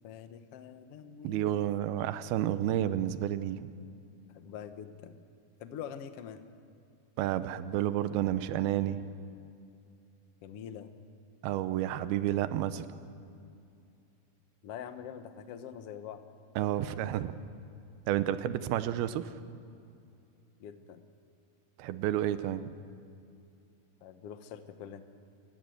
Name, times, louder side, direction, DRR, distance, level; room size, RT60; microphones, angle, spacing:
voice 1, 0.0-1.9 4.3-5.2 5.6-6.4 10.4-10.9 14.6-16.2 20.6-21.0 24.0-25.0, left 8 dB, 70° left, 9 dB, 1.4 m, -44 dB
voice 2, 1.2-3.7 7.2-9.1 11.4-12.9 16.6-17.4 18.1-19.3 21.8-22.7, right 12 dB, 85° right, 12 dB, 2.7 m, -30 dB
29.5 x 16.0 x 7.8 m, 2.5 s
omnidirectional pair, 4.3 m